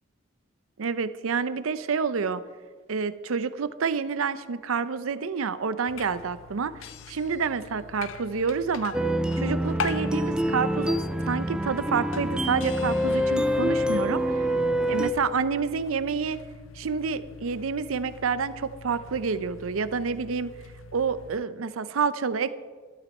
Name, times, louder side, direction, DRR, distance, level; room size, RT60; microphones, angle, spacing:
voice 1, 0.8-2.4 2.9-6.7 7.1-8.9 9.4-14.5 14.9-16.4 16.8-20.5 20.9-22.5, right 5 dB, 85° right, 14 dB, 0.5 m, -28 dB
sound 1, 5.9-21.4, left 5 dB, 70° left, 0.5 m, -42 dB
sound 2, 8.9-15.1, equal, 5° right, 0.4 m, -26 dB
12.5 x 12.0 x 4.2 m, 1.5 s
head